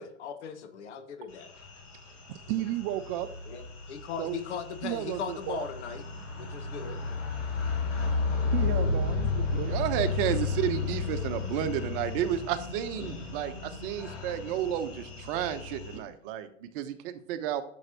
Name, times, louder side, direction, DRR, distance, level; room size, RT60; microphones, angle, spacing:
voice 1, 0.0-1.5 3.5-6.0 6.4-7.0, left 7 dB, 65° left, 8 dB, 1.5 m, -38 dB
sound 1, 1.4-16.0, left 4 dB, 85° left, 3.0 m, -33 dB
voice 2, 2.3-3.3 4.2-4.4 4.8-5.7 6.4-6.5 8.5-9.7 15.9-16.0, right 13 dB, 30° right, 10 dB, 0.4 m, -33 dB
voice 3, 9.7-17.6, right 10 dB, 45° right, 10 dB, 1.0 m, -32 dB
11.0 x 7.2 x 2.9 m, 0.65 s
hypercardioid pair, 105°, 38 cm